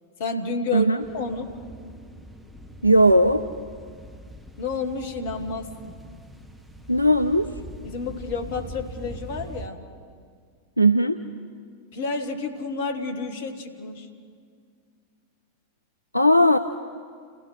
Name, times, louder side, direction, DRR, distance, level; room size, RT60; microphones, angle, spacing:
voice 1, 0.2-0.9 1.1-1.5 4.6-5.9 7.8-9.8 11.9-14.1, left 3 dB, 55° left, 5 dB, 2.0 m, -30 dB
voice 2, 0.7-1.0 2.8-3.4 6.9-7.5 10.8-11.2 16.1-16.6, equal, 90° left, 9 dB, 0.5 m, -17 dB
sound 1, 1.0-9.7, equal, 5° right, 1.3 m, -42 dB
29.5 x 16.0 x 5.9 m, 2.1 s
figure-of-eight pair, 90°, 0 cm